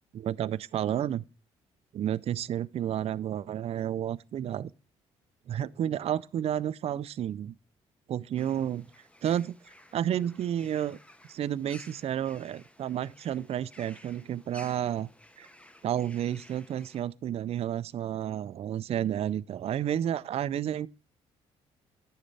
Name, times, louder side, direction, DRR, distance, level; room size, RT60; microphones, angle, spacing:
voice 1, 0.1-1.2 1.9-4.7 5.5-7.5 8.1-8.9 9.2-9.5 9.9-11.0 11.3-15.1 15.4-15.5 15.8-20.9, right 10 dB, 50° right, 0.4 m, -31 dB
sound 1, 8.4-17.0, left 1 dB, 10° left, 1.0 m, -55 dB
9.8 x 6.5 x 3.3 m
supercardioid pair, 65°, 13 cm